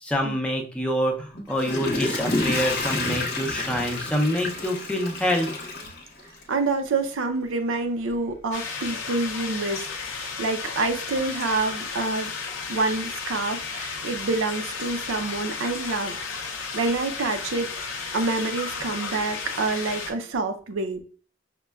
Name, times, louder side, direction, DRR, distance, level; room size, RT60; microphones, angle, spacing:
voice 1, 0.0-5.5, equal, 5° left, 1 dB, 0.5 m, -26 dB
Water / Toilet flush, 1.3-6.6 7.1-7.2, left 2 dB, 55° left, 0.7 m, -29 dB
voice 2, 6.5-12.3 12.7-21.0, right 3 dB, 85° right, 7 dB, 0.5 m, -27 dB
sound 1, 8.5-20.1, left 5 dB, 90° left, 0.6 m, -33 dB
5.2 x 2.2 x 2.2 m, 0.40 s
head